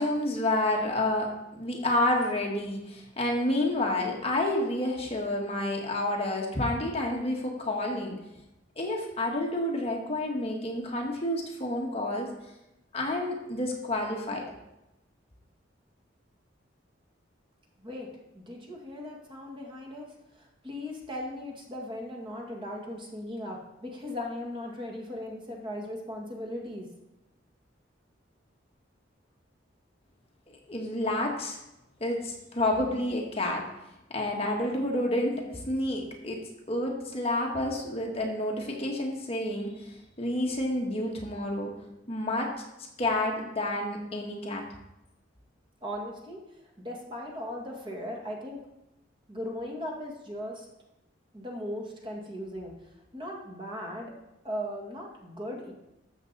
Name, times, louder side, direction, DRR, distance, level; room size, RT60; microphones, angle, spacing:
voice 1, 0.0-8.2 8.8-12.3 12.9-14.4 30.7-31.6 32.0-33.6 34.1-36.4 36.7-41.7 42.1-42.5 43.0-44.6, left 1 dB, 30° left, 0 dB, 1.6 m, -29 dB
voice 2, 18.3-20.1 20.4-26.9 45.8-46.4 46.8-48.6 49.3-50.7 51.3-52.7 53.1-54.1 54.4-55.7, left 1 dB, 25° right, 0 dB, 1.9 m, -38 dB
13.0 x 7.1 x 4.1 m, 0.92 s
head